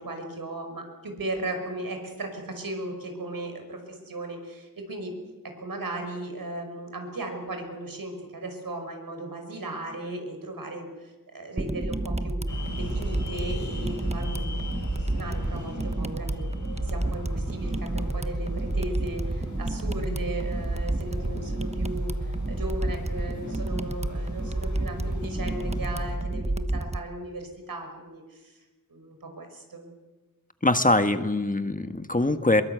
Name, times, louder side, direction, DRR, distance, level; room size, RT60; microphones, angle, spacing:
voice 1, 0.0-5.2 5.6-12.4 12.7-14.6 14.9-16.5 16.8-28.6 28.9-29.9, right 1 dB, 75° right, 4 dB, 5.7 m, -36 dB
sound 1, 11.6-27.0, right 2 dB, 20° right, 1.1 m, -30 dB
sound 2, 12.5-26.2, left 2 dB, 60° left, 7.7 m, -41 dB
voice 2, 30.6-32.6, left 2 dB, 25° left, 8 dB, 1.5 m, -23 dB
22.5 x 22.0 x 8.1 m, 1.2 s
wide cardioid pair, 60°, 34 cm